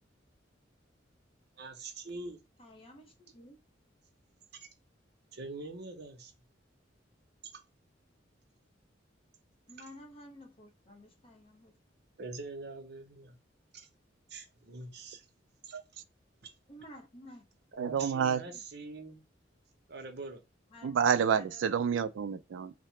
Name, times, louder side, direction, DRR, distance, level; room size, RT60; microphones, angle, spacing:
voice 1, 1.6-2.4 4.5-4.7 5.3-6.3 7.5-7.6 12.2-13.4 13.7-13.9 14.3-15.3 15.6-15.8 16.4-16.5 17.7-19.2 19.9-20.4, right 3 dB, 60° right, 0.7 m, -44 dB
voice 2, 2.6-3.6 9.7-11.7 16.7-17.4 18.5-18.6 20.7-21.6, left 1 dB, 30° left, 0.6 m, -52 dB
voice 3, 17.8-18.4 20.8-22.7, right 7 dB, 80° right, 0.3 m, -29 dB
2.8 x 2.1 x 3.1 m
head